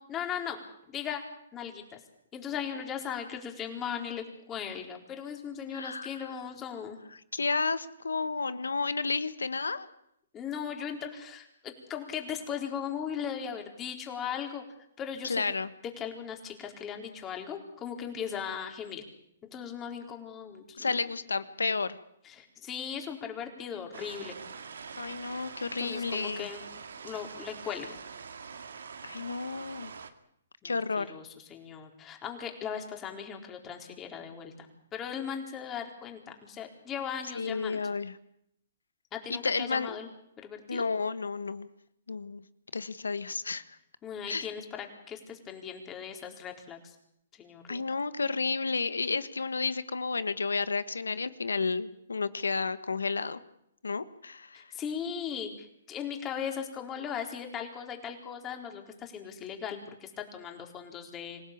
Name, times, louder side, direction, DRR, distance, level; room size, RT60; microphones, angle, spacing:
voice 1, 0.1-0.6 0.9-1.2 1.5-2.0 2.3-7.0 10.3-14.6 15.0-15.4 16.0-19.0 19.4-21.0 22.2-24.3 25.8-26.6 27.0-28.0 30.6-37.8 39.1-40.1 40.4-40.8 44.0-47.0 47.3-47.8 54.5-61.4, left 8 dB, 20° left, 3 dB, 4.3 m, -38 dB
voice 2, 5.7-6.1 7.3-9.9 15.2-15.7 20.8-22.0 25.0-26.5 29.0-29.9 30.6-31.1 37.3-38.1 39.3-40.0 40.7-41.7 42.1-42.4 42.7-43.6 44.3-44.5 47.7-53.4 53.8-54.7, left 4 dB, 90° left, 14 dB, 1.4 m, -31 dB
sound 1, 23.9-30.1, right 5 dB, 75° right, 2.3 m, -44 dB
26.0 x 17.0 x 8.6 m, 0.75 s
hypercardioid pair, 135°, 0 cm